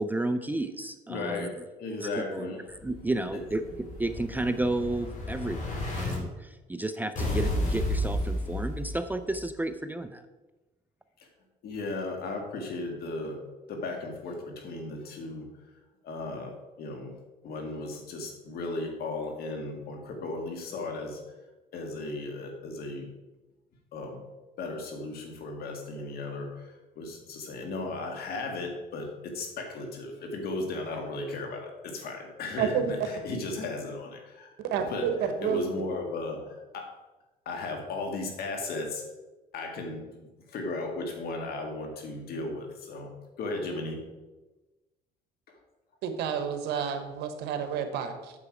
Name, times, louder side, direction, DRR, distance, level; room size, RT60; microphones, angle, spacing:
voice 1, 0.0-1.5 2.0-3.6 4.0-10.3, right 2 dB, 10° right, 9 dB, 0.5 m, -32 dB
voice 2, 1.1-1.5 1.8-2.6 11.6-13.4 13.7-15.5 16.0-16.5 16.8-17.1 17.4-21.2 21.7-23.1 23.9-24.2 24.6-34.5 34.9-36.9 37.5-39.0 39.5-40.0 40.5-43.1 43.4-44.0, left 2 dB, 65° left, 3 dB, 2.1 m, -35 dB
Explosion, 2.8-6.2 7.2-9.2, left 1 dB, 50° left, 3.0 m, -32 dB
voice 3, 32.6-32.9 34.6-35.7 46.0-48.3, right 7 dB, 80° right, 7 dB, 1.2 m, -30 dB
8.5 x 7.0 x 4.9 m, 1.1 s
cardioid pair, 110°, 17 cm